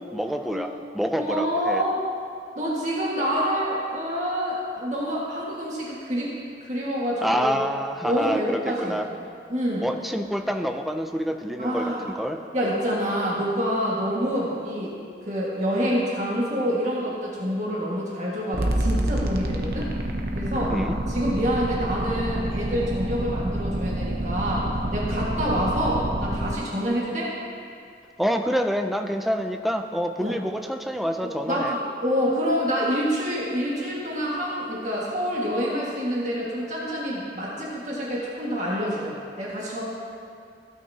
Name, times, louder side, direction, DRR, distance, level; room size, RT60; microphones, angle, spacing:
voice 1, 0.0-1.8 7.2-9.1 9.8-12.4 20.7-21.0 28.2-31.8, equal, ahead, 5 dB, 0.4 m, -27 dB
voice 2, 1.1-2.0 2.6-6.3 6.6-7.6 8.0-9.2 9.5-9.9 11.6-12.1 12.5-15.0 15.2-19.9 20.4-20.7 21.1-27.3 30.2-30.4 31.2-39.8, equal, 40° right, -6 dB, 1.8 m, -27 dB
sound 1, 18.5-26.6, right 1 dB, 60° right, 0.9 m, -27 dB
16.0 x 9.3 x 2.8 m, 2.4 s
head